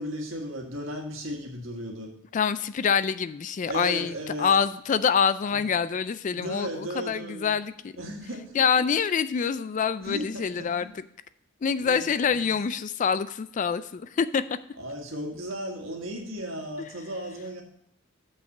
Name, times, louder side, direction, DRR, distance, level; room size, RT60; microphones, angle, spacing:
voice 1, 0.0-2.1 3.7-4.5 5.5-5.6 6.3-7.5 8.0-8.6 10.0-10.9 11.8-12.5 14.8-17.6, equal, 70° right, 1 dB, 1.8 m, -35 dB
voice 2, 2.3-4.1 4.4-7.9 8.5-10.9 11.6-14.4, left 6 dB, 35° left, 14 dB, 0.3 m, -26 dB
6.5 x 5.7 x 6.6 m, 0.73 s
head